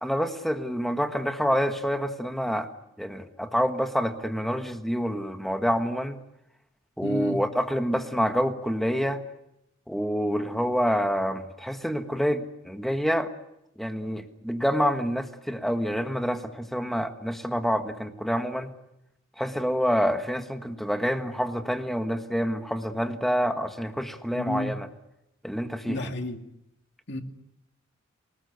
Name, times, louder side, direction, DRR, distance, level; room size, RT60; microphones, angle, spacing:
voice 1, 0.0-2.7 3.0-6.2 7.0-9.2 9.9-13.3 13.8-18.7 19.4-24.9 25.4-26.1, equal, ahead, 1.5 m, -27 dB
voice 2, 7.0-7.4 24.3-24.8 25.9-26.5 27.1-27.2, left 1 dB, 60° left, 2.2 m, -31 dB
28.0 x 19.5 x 8.1 m
head